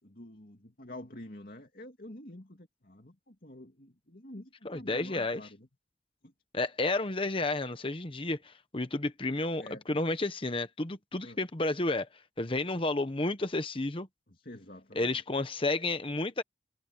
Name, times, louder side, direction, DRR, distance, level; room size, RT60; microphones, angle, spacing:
voice 1, 0.0-5.7 6.2-6.3 9.6-9.8 11.2-11.4 14.3-15.2, left 1 dB, 50° left, 2.6 m, -48 dB
voice 2, 4.6-5.4 6.5-12.1 12.4-14.1 15.0-16.4, left 2 dB, 30° left, 1.0 m, -31 dB
head